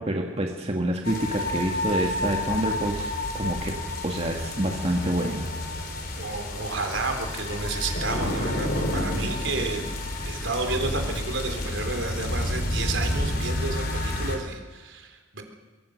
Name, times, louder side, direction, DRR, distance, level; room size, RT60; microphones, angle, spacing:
voice 1, 0.0-3.8 4.0-5.5, right 1 dB, 30° right, 1 dB, 1.9 m, -27 dB
sound 1, 1.0-14.4, left 1 dB, 50° left, 3.7 m, -30 dB
voice 2, 6.2-9.8 10.2-15.4, right 3 dB, 70° right, 4 dB, 3.7 m, -31 dB
24.5 x 23.5 x 6.5 m, 1.4 s
head